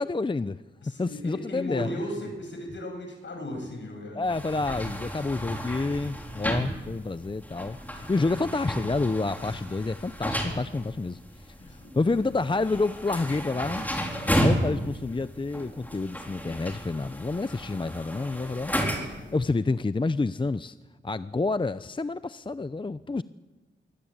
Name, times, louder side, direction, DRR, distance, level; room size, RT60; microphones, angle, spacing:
voice 1, 0.0-0.6 1.0-1.9 4.2-11.2 11.4-13.9 14.4-20.8 21.0-23.2, left 3 dB, 25° left, 0.6 m, -29 dB
voice 2, 0.8-4.2 9.3-9.5 11.6-12.4 19.2-19.4, left 1 dB, 60° left, 7.1 m, -37 dB
sound 1, 4.2-19.3, equal, 10° left, 4.5 m, -33 dB
24.0 x 17.0 x 8.8 m
cardioid pair, 65°, 21 cm